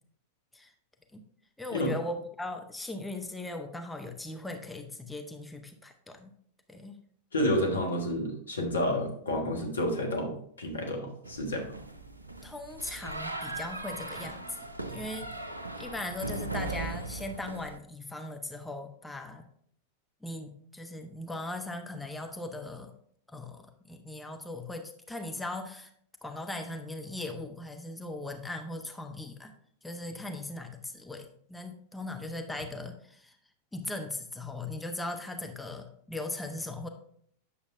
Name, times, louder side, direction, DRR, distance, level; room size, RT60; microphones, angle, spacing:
voice 1, 1.6-6.3 6.7-7.0 12.4-14.6 14.9-15.3 15.7-19.5 20.2-22.9 23.3-25.9 26.2-29.5 29.8-33.4 33.7-36.9, left 2 dB, 5° left, 5 dB, 0.7 m, -39 dB
voice 2, 7.3-11.7, left 1 dB, 75° left, 1 dB, 1.4 m, -30 dB
sound 1, 11.2-17.8, right 2 dB, 80° right, 0.6 m, -39 dB
8.8 x 6.7 x 2.6 m, 0.64 s
figure-of-eight pair, 90°, 0 cm